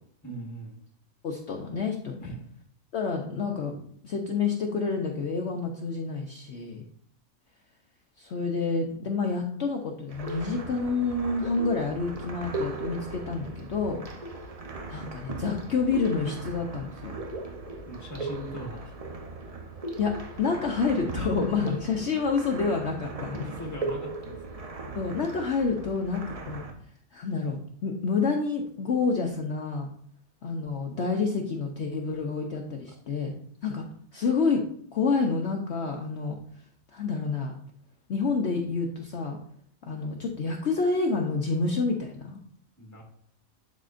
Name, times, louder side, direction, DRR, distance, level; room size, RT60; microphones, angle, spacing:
voice 1, 0.2-0.8 2.2-2.5 17.9-19.0 23.4-24.4 32.8-32.9 42.8-43.0, equal, 15° left, 0 dB, 1.2 m, -40 dB
voice 2, 1.2-2.3 2.9-3.8 4.0-6.8 8.2-14.0 14.9-17.1 20.0-23.5 24.9-26.6 27.1-29.9 30.4-33.3 33.6-33.8 34.1-34.6 34.9-36.3 36.9-37.6 38.1-39.4 39.9-42.4, left 4 dB, 60° left, 1 dB, 0.9 m, -28 dB
sound 1, 10.1-26.7, right 3 dB, 35° right, 0.6 m, -38 dB
11.5 x 4.2 x 2.5 m, 0.64 s
omnidirectional pair, 1.5 m